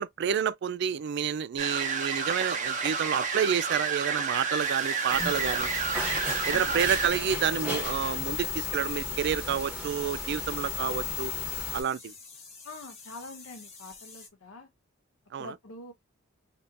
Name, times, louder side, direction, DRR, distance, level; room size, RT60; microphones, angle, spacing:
voice 1, 0.0-5.7 6.5-11.3 11.7-12.1 15.3-15.5, right 8 dB, 55° right, 0.3 m, -29 dB
sound 1, 1.6-7.1, right 5 dB, 40° right, 0.8 m, -30 dB
sound 2, 4.6-14.3, left 4 dB, 30° left, 1.3 m, -49 dB
sound 3, 5.1-11.8, left 4 dB, 5° right, 1.0 m, -34 dB
voice 2, 6.5-6.8 12.6-14.7 15.4-15.9, left 2 dB, 85° left, 1.0 m, -44 dB
3.5 x 2.8 x 2.5 m
head